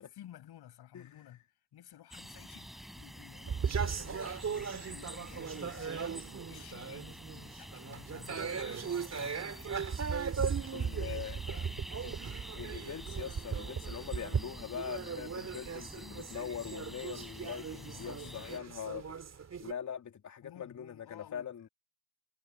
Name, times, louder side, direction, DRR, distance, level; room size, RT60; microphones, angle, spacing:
voice 1, 0.2-9.9 10.5-11.8 17.6-18.5 20.4-21.7, left 12 dB, 55° left, 6.4 m, -54 dB
voice 2, 0.9-1.3 10.7-11.4 12.0-12.1 12.5-19.1 19.6-21.7, left 8 dB, 40° left, 2.8 m, -42 dB
sound 1, 2.1-18.6, equal, ahead, 5.2 m, -48 dB
sound 2, 3.5-19.7, right 6 dB, 35° right, 3.2 m, -38 dB
supercardioid pair, 75°, 45 cm